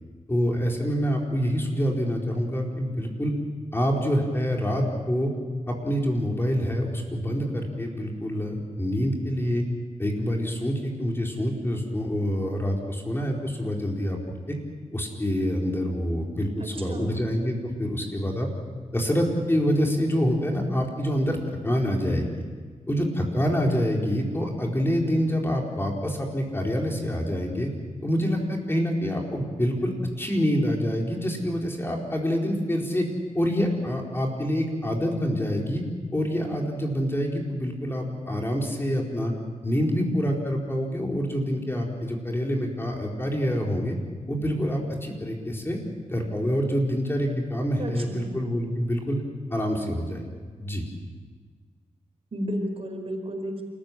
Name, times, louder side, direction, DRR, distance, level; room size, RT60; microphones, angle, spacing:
voice 1, 0.3-3.3 3.7-5.3 5.7-9.6 10.0-14.2 14.5-14.6 14.9-18.5 18.9-21.4 21.6-22.3 22.9-27.7 28.0-33.1 33.3-35.8 36.1-39.3 39.6-44.0 44.3-45.8 46.1-49.2 49.5-50.2 50.6-50.8, equal, 20° left, 0 dB, 4.5 m, -26 dB
voice 2, 16.6-17.2 47.8-48.4 52.3-53.6, equal, 50° right, 3 dB, 4.8 m, -33 dB
28.5 x 14.5 x 9.1 m, 1.5 s
cardioid pair, 80°, 12 cm